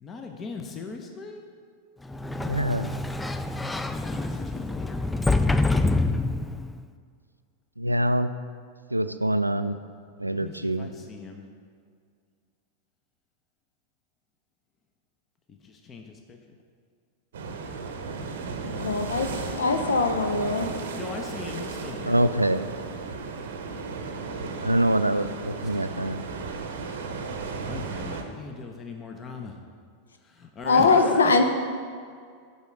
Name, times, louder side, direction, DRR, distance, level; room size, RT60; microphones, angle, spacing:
voice 1, 0.0-1.4 3.6-6.2 10.3-11.5 15.5-16.4 21.0-22.2 25.5-26.1 27.6-29.6 30.2-31.4, left 4 dB, 25° left, 3 dB, 0.7 m, -39 dB
Sliding door, 2.1-6.8, left 2 dB, 5° left, 0.3 m, -26 dB
voice 2, 2.4-2.9 7.8-8.3 8.9-9.8 10.2-10.9 22.1-22.7 24.6-26.2, right 1 dB, 85° right, 11 dB, 0.3 m, -25 dB
sound 1, 17.3-28.2, right 4 dB, 60° right, 0.8 m, -35 dB
voice 3, 18.6-19.3 19.5-20.7 30.6-31.4, left 4 dB, 70° left, 7 dB, 0.7 m, -21 dB
8.1 x 5.6 x 5.0 m, 2.1 s
figure-of-eight pair, 90°, 0 cm